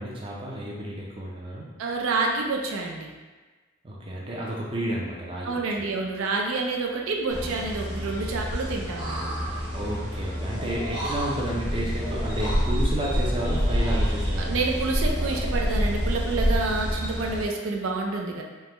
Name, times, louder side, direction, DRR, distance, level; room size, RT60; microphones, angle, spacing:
voice 1, 0.0-1.7 3.8-6.0 9.7-14.6, right 1 dB, 25° right, -4 dB, 0.4 m, -31 dB
voice 2, 1.8-3.1 5.4-9.3 14.4-18.4, right 3 dB, 80° right, 0 dB, 0.4 m, -28 dB
sound 1, 7.3-17.4, equal, 55° right, 1.1 m, -27 dB
3.4 x 2.1 x 2.9 m, 1.3 s
head